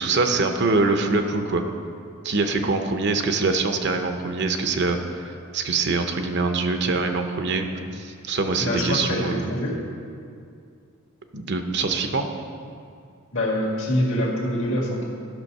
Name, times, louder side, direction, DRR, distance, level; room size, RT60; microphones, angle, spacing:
voice 1, 0.0-1.6 2.2-7.7 7.9-9.4 11.3-12.2, right 3 dB, 55° right, 6 dB, 0.7 m, -24 dB
voice 2, 8.6-9.9 13.3-15.1, left 1 dB, 65° left, -2 dB, 2.1 m, -25 dB
12.0 x 6.3 x 5.4 m, 2.4 s
head